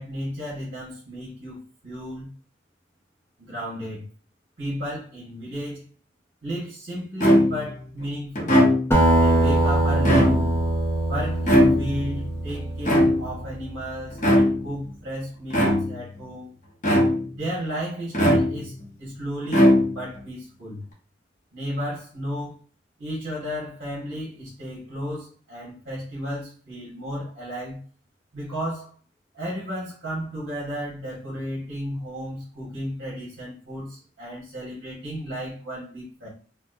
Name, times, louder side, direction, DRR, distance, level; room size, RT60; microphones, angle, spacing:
voice 1, 0.0-2.3 3.4-4.1 4.6-5.8 6.4-8.7 9.1-10.4 11.1-16.5 17.3-20.8 21.5-22.6 23.0-27.8 28.3-28.9 29.3-36.3, equal, 55° right, 1.6 m, -33 dB
sound 1, 7.2-7.8 8.3-9.1 9.9-10.7 11.5-12.1 12.8-13.5 14.2-14.7 15.5-16.1 16.8-17.4 18.1-18.8 19.5-20.2, equal, 40° left, 0.9 m, -19 dB
Acoustic guitar, 8.9-13.7, right 1 dB, 10° left, 0.5 m, -22 dB
4.3 x 2.3 x 2.6 m
head